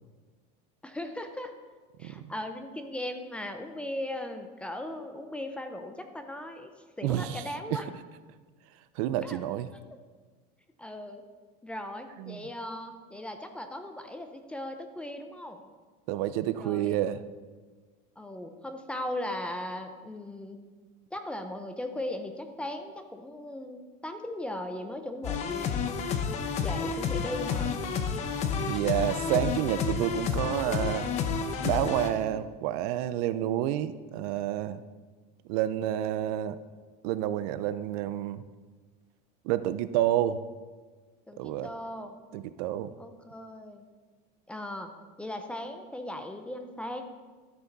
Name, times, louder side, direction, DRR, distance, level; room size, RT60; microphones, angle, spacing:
voice 1, 0.8-1.5 2.0-6.7 7.0-7.9 9.2-9.4 10.8-11.2 11.6-15.6 16.6-17.0 18.2-20.6 21.1-25.8 26.6-27.7 41.3-42.2 43.0-43.8 44.5-44.9 45.2-47.0, left 1 dB, 5° left, 6 dB, 0.4 m, -38 dB
voice 2, 7.0-7.4 7.7-7.8 9.0-9.7 12.2-12.5 16.1-17.2 28.6-31.1 31.6-34.8 35.5-36.6 37.0-38.4 39.4-40.4 41.4-41.7 42.3-42.9, right 12 dB, 65° right, 14 dB, 0.5 m, -29 dB
sound 1, 25.2-32.1, left 6 dB, 30° left, 0.8 m, -30 dB
12.5 x 6.9 x 3.9 m, 1.4 s
cardioid pair, 170°, 21 cm